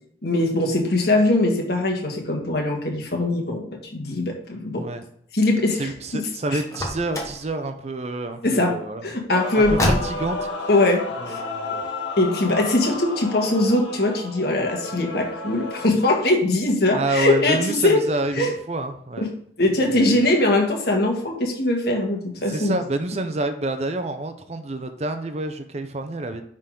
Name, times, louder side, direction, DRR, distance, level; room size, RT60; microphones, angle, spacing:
voice 1, 0.2-4.9 5.3-6.6 8.4-9.9 10.7-11.4 12.2-18.1 18.3-18.5 19.2-22.8, left 2 dB, 60° left, 1 dB, 1.6 m, -21 dB
voice 2, 5.8-9.0 9.6-10.7 11.2-11.8 16.9-19.3 19.9-20.2 22.5-26.4, right 2 dB, 35° right, 9 dB, 0.6 m, -28 dB
Car, 6.7-7.5 9.6-10.5, left 1 dB, 15° left, 1.1 m, -25 dB
Male singing / Female singing / Musical instrument, 9.3-15.9, left 2 dB, 85° left, 1.6 m, -32 dB
9.9 x 3.8 x 3.8 m, 0.67 s
head